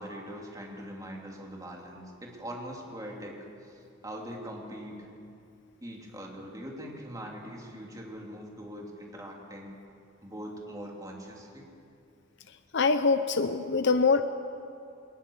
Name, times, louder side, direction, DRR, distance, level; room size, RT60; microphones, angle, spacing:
voice 1, 0.0-5.1 5.8-9.8 10.2-11.7, equal, 20° right, -1 dB, 3.1 m, -42 dB
voice 2, 12.7-14.2, left 4 dB, 60° left, 9 dB, 0.7 m, -24 dB
21.0 x 20.0 x 7.2 m, 2.6 s
head